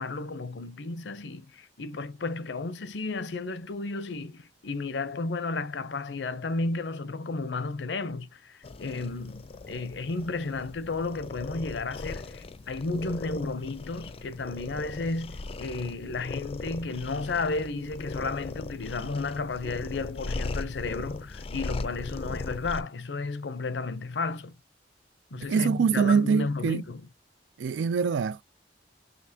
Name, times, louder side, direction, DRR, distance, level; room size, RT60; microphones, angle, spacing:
voice 1, 0.0-24.5 25.3-27.1, left 3 dB, 75° left, 0.6 m, -33 dB
sound 1, 8.6-22.8, left 3 dB, 35° left, 0.4 m, -38 dB
voice 2, 25.3-26.8 27.6-28.4, right 6 dB, 90° right, 0.3 m, -24 dB
5.2 x 3.3 x 2.7 m
head